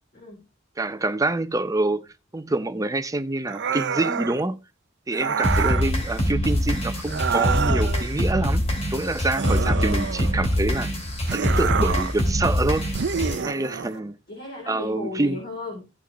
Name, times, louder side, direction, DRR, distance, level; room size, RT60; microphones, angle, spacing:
voice 1, 0.1-0.5 13.3-15.9, left 2 dB, 50° left, 3.8 m, -37 dB
voice 2, 0.8-2.1 2.3-4.6 5.1-8.6 8.9-10.9 11.3-12.9 13.4-14.1 14.7-15.4, right 2 dB, 15° right, 0.6 m, -26 dB
sound 1, 3.5-4.4 5.1-5.9 7.1-8.1 9.4-10.5 11.3-12.2 12.9-13.9, right 6 dB, 60° right, 0.6 m, -27 dB
sound 2, 5.4-13.4, equal, 35° left, 2.5 m, -24 dB
15.5 x 6.2 x 3.1 m
head